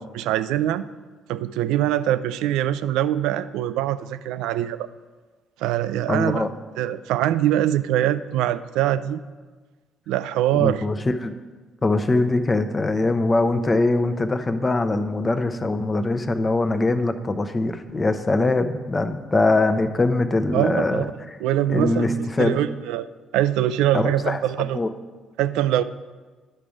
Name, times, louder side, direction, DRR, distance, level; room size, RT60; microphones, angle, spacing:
voice 1, 0.1-0.8 1.3-4.9 5.6-6.5 6.8-9.2 10.1-10.8 20.5-21.1 21.4-23.1 23.3-24.8 25.4-25.8, right 12 dB, 65° right, 14 dB, 0.3 m, -23 dB
voice 2, 6.1-6.5 10.5-11.3 11.8-21.0 21.7-22.6 23.9-24.9, left 2 dB, 25° left, 9 dB, 0.7 m, -22 dB
11.0 x 5.9 x 5.0 m, 1.3 s
figure-of-eight pair, 45°, 0 cm